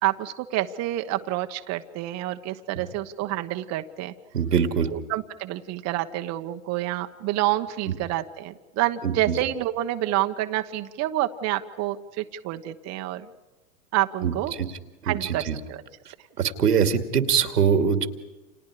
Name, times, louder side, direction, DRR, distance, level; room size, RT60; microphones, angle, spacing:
voice 1, 0.0-4.1 4.9-13.3 13.9-14.5 15.0-15.8, right 14 dB, 35° right, 7 dB, 1.2 m, -28 dB
voice 2, 4.3-4.9 7.9-8.0 9.0-9.4 14.2-14.7 15.0-15.6 16.4-18.1, right 7 dB, 85° right, 8 dB, 2.6 m, -23 dB
30.0 x 28.0 x 5.0 m, 1.2 s
hypercardioid pair, 115°, 47 cm